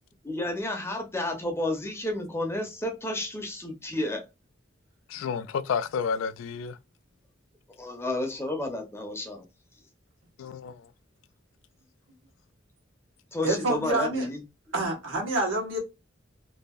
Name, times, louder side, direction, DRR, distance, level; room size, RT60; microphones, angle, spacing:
voice 1, 0.2-4.3 7.8-9.5 13.3-14.4, left 1 dB, 15° left, 0.6 m, -31 dB
voice 2, 5.1-6.8 10.4-10.9, left 6 dB, 85° left, 0.3 m, -30 dB
voice 3, 13.4-14.3 14.7-15.8, right 2 dB, 85° right, 1.1 m, -27 dB
2.7 x 2.6 x 2.3 m
head